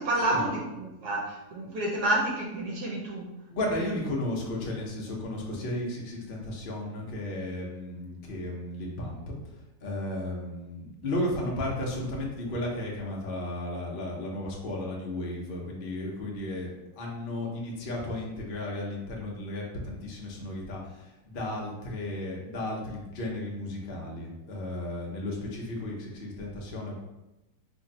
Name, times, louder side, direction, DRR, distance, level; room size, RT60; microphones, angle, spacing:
voice 1, 0.0-3.3, right 1 dB, 70° right, -3 dB, 1.1 m, -29 dB
voice 2, 3.5-9.3 9.8-26.9, left 1 dB, 65° left, -2 dB, 0.5 m, -34 dB
2.9 x 2.6 x 4.0 m, 0.98 s
omnidirectional pair, 1.9 m